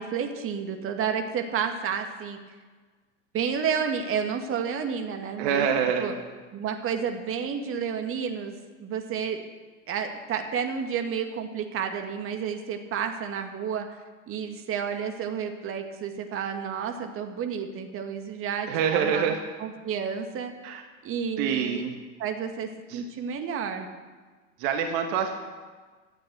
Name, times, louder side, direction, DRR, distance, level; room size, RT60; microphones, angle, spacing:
voice 1, 0.0-2.4 3.3-5.7 6.0-6.1 6.5-8.5 8.8-9.4 9.9-13.9 14.3-20.5 21.0-21.8 22.2-23.9, right 7 dB, 30° right, 5 dB, 2.0 m, -31 dB
voice 2, 5.4-6.1 18.7-19.4 20.6-20.8 21.4-21.9 22.9-23.0 24.6-25.3, right 7 dB, 50° right, 4 dB, 1.8 m, -26 dB
17.0 x 12.5 x 6.2 m, 1.4 s
figure-of-eight pair, 85°, 40 cm